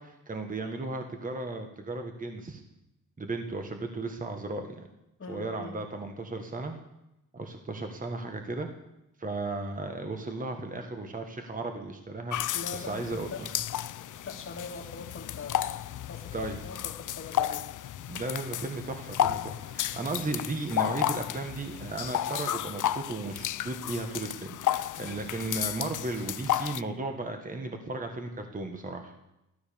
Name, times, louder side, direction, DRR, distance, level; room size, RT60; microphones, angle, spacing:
voice 1, 0.0-2.6 3.2-4.9 5.3-6.7 7.3-8.7 9.2-13.5 16.3-16.6 18.1-29.1, right 2 dB, 25° right, 4 dB, 1.6 m, -35 dB
voice 2, 5.2-5.8 12.5-13.4 14.0-15.8 16.1-16.3 16.6-17.6 25.0-25.2, left 4 dB, 40° left, 1 dB, 2.8 m, -42 dB
sound 1, 12.3-26.8, left 11 dB, 70° left, 0.6 m, -33 dB
15.5 x 13.5 x 6.9 m, 0.89 s
wide cardioid pair, 165°, 32 cm